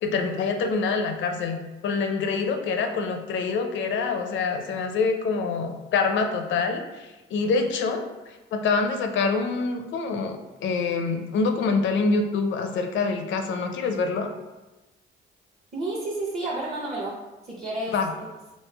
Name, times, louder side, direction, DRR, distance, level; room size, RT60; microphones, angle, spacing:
voice 1, 0.0-8.1 8.5-14.3 17.9-18.1, left 4 dB, 70° left, 6 dB, 0.5 m, -26 dB
voice 2, 15.7-17.2 17.4-18.3, right 2 dB, 40° right, -4 dB, 0.8 m, -31 dB
3.2 x 3.1 x 3.3 m, 1.1 s
cardioid pair, 90°, 20 cm